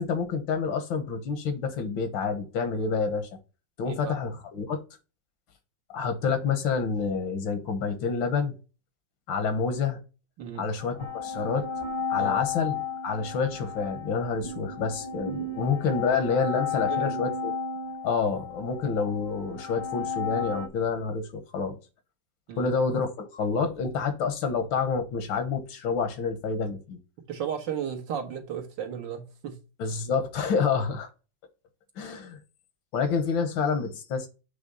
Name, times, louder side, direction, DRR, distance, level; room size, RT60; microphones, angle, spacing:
voice 1, 0.0-3.3 3.8-4.8 5.9-8.5 9.3-10.0 10.6-11.7 12.1-12.8 13.0-17.5 18.0-21.8 22.6-27.0 29.8-31.1 32.0-32.4 32.9-34.3, left 5 dB, 80° left, 1.9 m, -28 dB
voice 2, 3.9-4.2 10.4-10.7 12.2-12.4 16.7-17.2 22.5-22.7 27.3-29.6, right 8 dB, 70° right, 2.0 m, -34 dB
sound 1, 10.8-20.7, left 6 dB, 45° left, 0.3 m, -33 dB
7.8 x 3.2 x 5.3 m
omnidirectional pair, 2.1 m